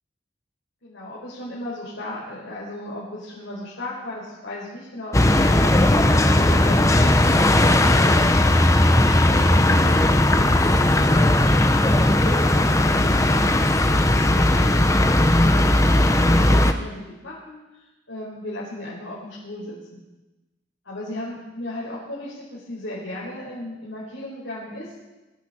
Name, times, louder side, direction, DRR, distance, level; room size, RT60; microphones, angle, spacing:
voice 1, 0.8-8.6 9.2-11.3 11.7-14.8 15.1-20.0 20.9-24.9, left 1 dB, 85° left, -7 dB, 4.7 m, -36 dB
sound 1, 5.1-16.7, left 1 dB, 15° left, 0.8 m, -17 dB
22.5 x 14.5 x 4.4 m, 1.1 s
head